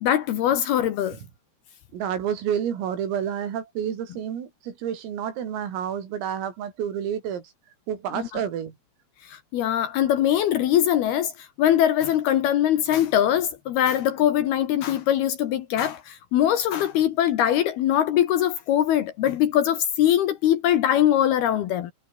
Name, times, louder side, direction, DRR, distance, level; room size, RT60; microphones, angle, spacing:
voice 1, 0.0-1.2 8.2-8.3 9.2-21.9, left 11 dB, 70° left, 2.7 m, -22 dB
voice 2, 1.9-7.5 7.9-8.8, right 9 dB, 90° right, 6.3 m, -29 dB
omnidirectional pair, 5.8 m